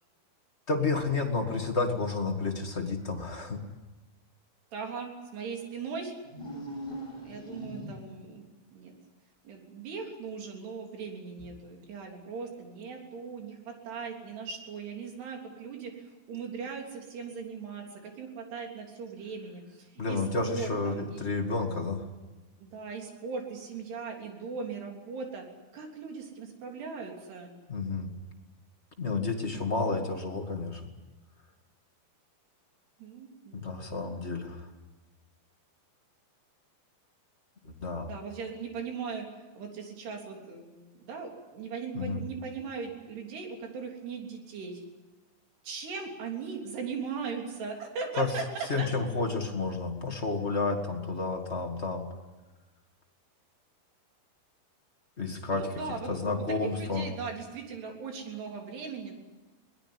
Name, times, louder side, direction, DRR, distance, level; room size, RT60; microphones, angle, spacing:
voice 1, 0.7-3.6 20.0-22.0 27.7-28.1 29.0-30.8 33.5-34.7 37.6-38.1 41.9-42.2 48.2-48.3 48.7-52.1 55.2-57.1, left 3 dB, 30° left, 2 dB, 1.1 m, -31 dB
voice 2, 4.7-6.1 7.2-8.5 8.7-8.9 9.4-20.2 20.5-21.2 22.6-25.4 25.7-27.5 33.0-34.0 38.1-39.3 39.6-44.8 45.6-48.5 48.8-48.9 55.5-59.1, right 5 dB, 75° right, 2 dB, 5.5 m, -39 dB
sound 1, 6.2-8.3, right 1 dB, 5° left, 7.4 m, -40 dB
22.0 x 20.0 x 9.8 m, 1.1 s
omnidirectional pair, 4.8 m